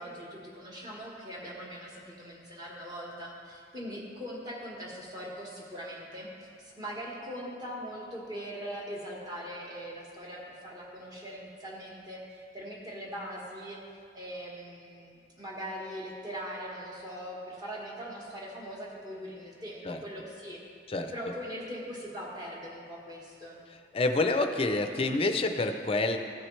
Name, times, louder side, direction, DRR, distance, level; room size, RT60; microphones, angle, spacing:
voice 1, 0.0-12.2 12.5-13.8 14.1-20.6 21.1-23.6, equal, 25° right, -4 dB, 1.4 m, -41 dB
voice 2, 23.9-26.2, left 2 dB, 35° left, 6 dB, 0.5 m, -27 dB
14.0 x 6.1 x 3.2 m, 2.4 s
head